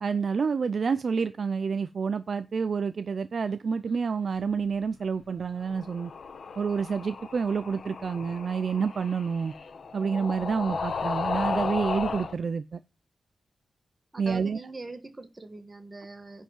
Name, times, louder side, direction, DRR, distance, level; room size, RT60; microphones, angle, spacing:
voice 1, 0.0-6.1 6.6-9.5 9.9-12.8 14.2-14.6, right 5 dB, 45° right, 0.5 m, -28 dB
sound 1, 5.6-12.3, left 5 dB, 50° left, 1.2 m, -34 dB
voice 2, 14.1-16.4, right 2 dB, 20° right, 1.6 m, -42 dB
10.5 x 4.5 x 7.3 m
wide cardioid pair, 145°, 0 cm